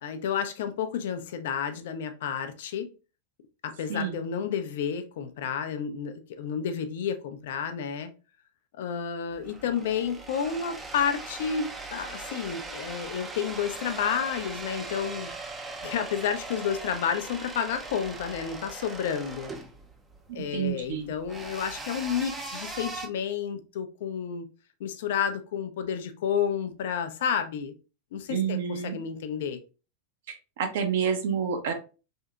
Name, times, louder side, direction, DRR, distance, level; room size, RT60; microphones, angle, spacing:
voice 1, 0.0-2.9 3.6-8.1 8.8-15.3 15.8-19.5 20.3-24.5 24.8-27.7 28.1-29.6, left 7 dB, 55° left, 0.4 m, -31 dB
sound 1, 9.3-23.1, right 3 dB, 15° right, 0.5 m, -40 dB
voice 2, 20.3-21.1 28.3-29.0 30.3-31.7, right 7 dB, 55° right, 0.6 m, -29 dB
3.5 x 2.7 x 2.2 m
figure-of-eight pair, 90°, 0 cm